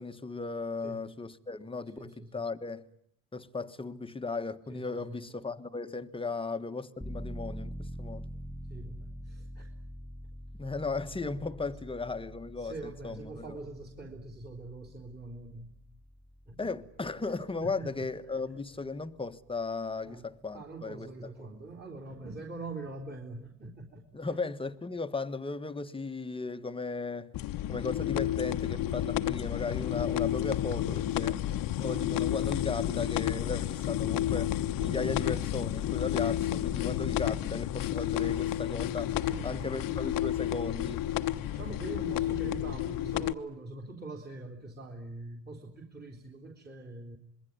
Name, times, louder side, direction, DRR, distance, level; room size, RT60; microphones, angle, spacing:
voice 1, 0.0-2.9 3.3-8.3 10.6-13.6 16.6-21.1 24.1-27.4 27.7-31.4 31.8-39.1 39.4-41.1 41.6-41.7, left 3 dB, 15° left, 1.4 m, -36 dB
voice 2, 2.0-2.5 4.7-5.3 8.7-9.7 12.6-15.7 16.5-16.7 17.6-18.1 20.1-20.3 20.5-24.4 34.8-35.0 39.2-40.0 41.5-47.2, right 3 dB, 25° right, 3.5 m, -44 dB
sound 1, 7.0-19.5 19.9-20.0, equal, 5° right, 1.7 m, -45 dB
sound 2, 27.3-43.3, left 12 dB, 55° left, 1.2 m, -31 dB
26.5 x 21.5 x 9.5 m
supercardioid pair, 95°, 41 cm